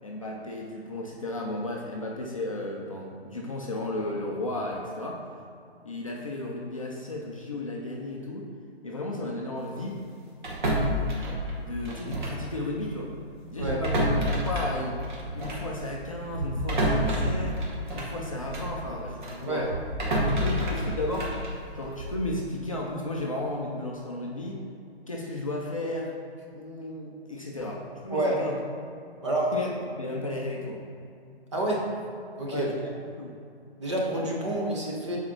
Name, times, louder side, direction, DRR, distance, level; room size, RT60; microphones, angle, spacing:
voice 1, 0.0-5.2 5.8-8.5 8.8-10.0 11.6-13.1 13.5-15.0 15.4-17.6 17.9-19.7 20.2-21.4 21.7-24.6 25.1-26.1 26.5-28.6 29.5-29.7 30.0-30.8 32.5-32.7 33.2-33.3, left 1 dB, 35° left, -2 dB, 0.5 m, -34 dB
sound 1, 10.4-12.5 12.8-13.0 13.5-18.8 19.2-22.3, equal, 45° right, 1.3 m, -29 dB
voice 2, 29.2-29.5 31.5-31.9 32.4-32.7 33.8-35.2, right 1 dB, 30° right, -2 dB, 0.8 m, -28 dB
4.7 x 4.3 x 5.9 m, 2.5 s
hypercardioid pair, 165°, 32 cm